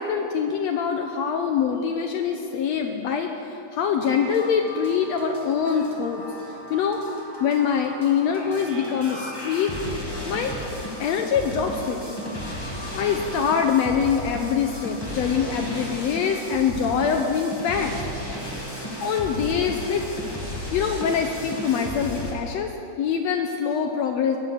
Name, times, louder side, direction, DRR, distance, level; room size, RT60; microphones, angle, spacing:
voice 1, 0.0-6.2 6.7-7.0 7.4-9.7 10.3-10.5 11.0-12.2 12.9-18.0 19.0-20.0 20.7-22.7 23.0-24.4, left 7 dB, 80° left, 4 dB, 1.6 m, -24 dB
sound 1, 3.9-22.3, left 1 dB, 10° left, 1.2 m, -34 dB
20.5 x 7.5 x 6.1 m, 2.7 s
omnidirectional pair, 3.7 m